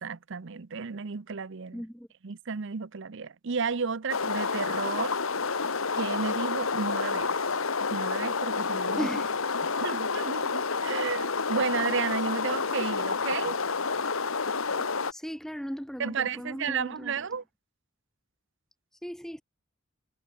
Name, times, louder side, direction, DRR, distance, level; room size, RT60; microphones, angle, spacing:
voice 1, 0.0-1.8 2.2-5.2 5.9-7.4 7.9-9.1 9.8-13.6 16.0-17.4, right 5 dB, 60° right, 0.7 m, -32 dB
voice 2, 1.7-2.1 9.0-9.3 15.1-17.3 19.0-19.4, equal, ahead, 2.9 m, -37 dB
sound 1, 4.1-15.1, left 4 dB, 80° left, 1.6 m, -29 dB
head